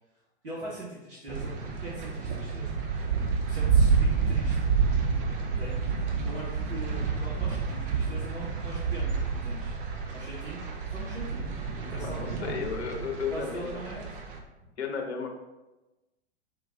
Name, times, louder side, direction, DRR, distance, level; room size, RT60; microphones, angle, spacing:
voice 1, 0.4-1.5 1.8-2.7 3.4-4.6 5.5-5.7 6.2-9.7 10.1-11.4 11.8-12.5 13.3-14.2, right 1 dB, 75° right, -7 dB, 1.2 m, -41 dB
sound 1, 1.3-14.4, right 5 dB, 50° right, 0.8 m, -29 dB
voice 2, 12.0-13.8 14.8-15.3, left 5 dB, 75° left, 2 dB, 0.8 m, -34 dB
4.9 x 2.3 x 3.7 m, 1.1 s
figure-of-eight pair, 95°, 34 cm